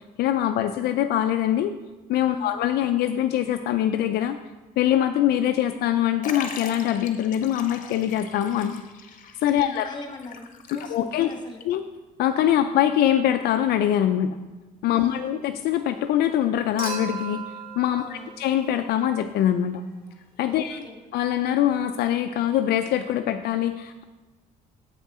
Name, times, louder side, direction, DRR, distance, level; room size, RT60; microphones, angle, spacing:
voice 1, 0.2-1.7 2.1-4.4 4.8-8.8 9.4-9.9 10.9-11.3 11.6-11.8 12.2-14.4 14.8-17.4 17.8-19.8 20.4-20.8 21.1-24.0, left 11 dB, 70° left, 7 dB, 0.4 m, -23 dB
Liquid, 6.2-11.3 11.6-11.7 12.6-12.7, left 6 dB, 50° left, 0.9 m, -40 dB
voice 2, 9.6-11.6 14.9-15.3 18.0-18.4 20.5-21.0, left 3 dB, 25° left, 4 dB, 1.4 m, -40 dB
Human group actions / Chink clink / Liquid, 16.8-19.2 20.7-20.8, right 4 dB, 55° right, 2.3 m, -37 dB
7.4 x 6.0 x 4.2 m, 1.2 s
cardioid pair, 110°, 17 cm